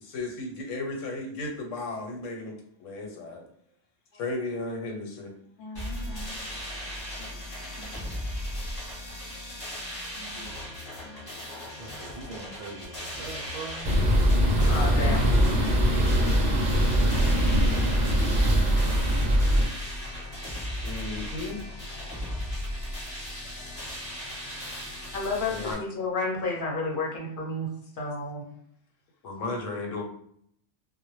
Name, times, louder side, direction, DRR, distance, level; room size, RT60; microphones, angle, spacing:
voice 1, 0.1-3.4 4.1-5.3 7.0-7.1 7.6-7.7 10.3-11.4 17.4-17.8 20.8-21.6 23.3-23.5 24.5-24.8 25.5-25.8 28.0-28.1 29.2-30.0, left 2 dB, 90° left, 2 dB, 1.0 m, -36 dB
voice 2, 5.6-6.4 7.8-7.9 10.2-10.5 11.0-11.2 14.6-15.3 25.1-27.7 28.0-28.4, left 3 dB, 50° left, -2 dB, 0.8 m, -32 dB
sound 1, 5.7-25.7, equal, 15° left, 1.0 m, -36 dB
voice 3, 11.8-13.9, right 3 dB, 75° right, 1 dB, 0.9 m, -42 dB
sound 2, 13.8-19.7, equal, 50° right, 0.6 m, -22 dB
2.1 x 2.0 x 3.0 m, 0.67 s
omnidirectional pair, 1.3 m